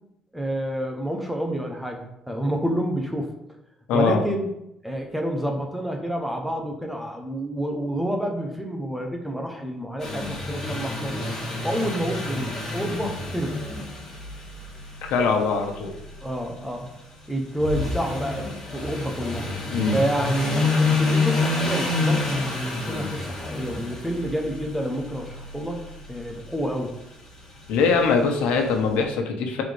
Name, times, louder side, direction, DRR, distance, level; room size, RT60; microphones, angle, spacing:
voice 1, 0.3-3.3 3.9-4.5 4.8-11.3 11.6-13.6 16.2-16.9 17.3-19.5 19.9-25.8 26.1-27.0, equal, ahead, 2 dB, 0.8 m, -29 dB
voice 2, 3.9-4.2 15.0-15.9 19.7-20.0 27.7-29.6, left 5 dB, 90° left, 3 dB, 1.2 m, -22 dB
sound 1, 10.0-28.9, left 3 dB, 20° left, 2.3 m, -29 dB
9.9 x 4.1 x 3.4 m, 0.83 s
cardioid pair, 165°, 2 cm